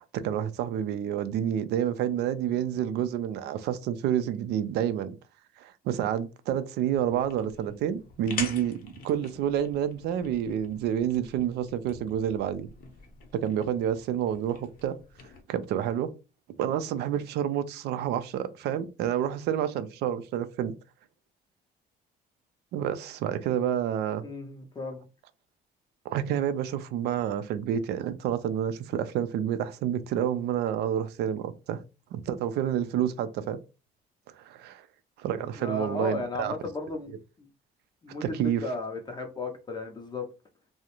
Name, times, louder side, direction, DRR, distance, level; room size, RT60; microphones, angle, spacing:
voice 1, 0.2-5.2 5.6-12.7 13.3-15.0 15.5-16.1 16.6-20.7 22.7-24.2 26.1-31.8 32.1-33.6 34.4-34.9 35.2-36.5 38.2-38.6, right 10 dB, 75° right, 0.4 m, -29 dB
sound 1, 6.9-15.4, left 5 dB, 60° left, 0.7 m, -44 dB
voice 2, 24.2-25.0 35.6-37.5 38.0-40.3, left 2 dB, 25° left, 0.5 m, -35 dB
2.4 x 2.0 x 2.9 m
cardioid pair, 110°, 17 cm